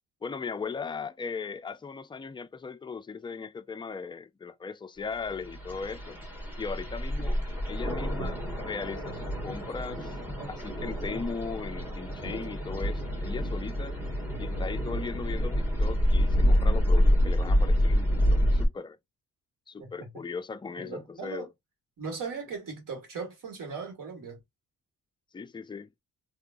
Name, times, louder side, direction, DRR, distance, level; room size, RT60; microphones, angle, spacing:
voice 1, 0.2-6.2 6.6-7.4 7.7-10.2 10.5-14.0 14.4-19.0 19.7-21.5 25.3-25.9, left 5 dB, 15° left, 0.3 m, -38 dB
sound 1, 5.3-18.7, equal, 5° right, 1.7 m, -27 dB
voice 2, 19.8-20.1 20.8-21.5 22.0-24.4, right 5 dB, 65° right, 1.9 m, -38 dB
3.5 x 3.0 x 2.5 m
cardioid pair, 90°, 35 cm